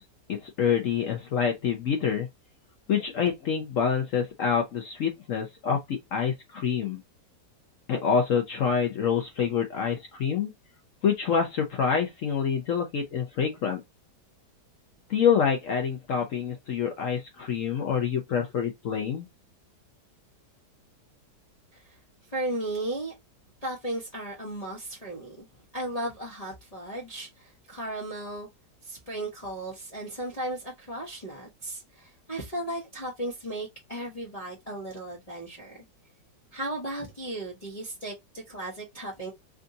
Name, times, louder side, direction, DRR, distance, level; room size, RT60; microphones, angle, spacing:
voice 1, 0.3-2.3 2.9-7.0 7.9-10.5 11.0-13.8 15.1-19.3, left 7 dB, 60° left, 0.9 m, -26 dB
voice 2, 22.3-23.1 23.6-25.5 25.7-28.5 28.8-35.8 36.5-39.3, right 1 dB, 25° left, 0.9 m, -35 dB
3.5 x 2.6 x 2.6 m
omnidirectional pair, 1.8 m